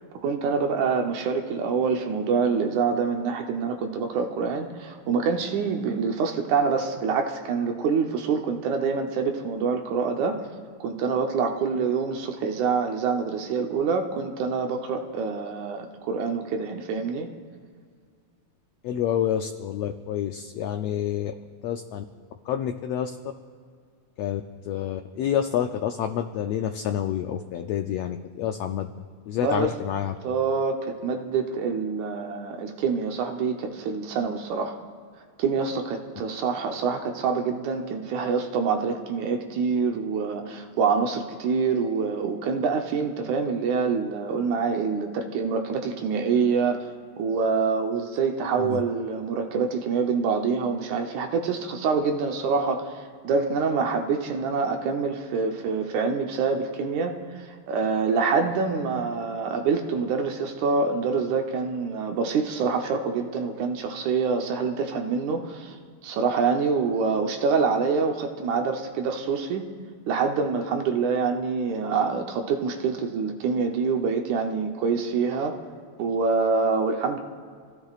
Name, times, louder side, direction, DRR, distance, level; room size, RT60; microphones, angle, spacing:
voice 1, 0.2-10.4 10.8-17.3 29.4-29.7 30.2-34.8 35.4-46.9 47.2-65.8 66.0-69.7 70.1-75.6 76.0-77.2, right 5 dB, 75° right, 4 dB, 2.2 m, -26 dB
voice 2, 18.8-21.3 21.6-22.0 22.4-23.1 24.2-28.9 29.3-30.2 48.6-48.8, left 10 dB, 85° left, 6 dB, 1.4 m, -28 dB
28.0 x 16.5 x 2.4 m, 2.1 s
omnidirectional pair, 3.6 m